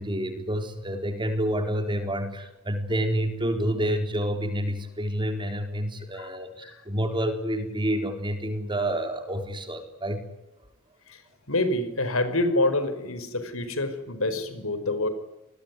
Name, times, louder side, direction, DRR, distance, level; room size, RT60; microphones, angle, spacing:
voice 1, 0.0-10.2, right 1 dB, 25° right, 7 dB, 4.0 m, -28 dB
voice 2, 11.5-15.1, left 2 dB, 70° left, 11 dB, 4.9 m, -27 dB
28.0 x 21.0 x 9.7 m, 0.91 s
head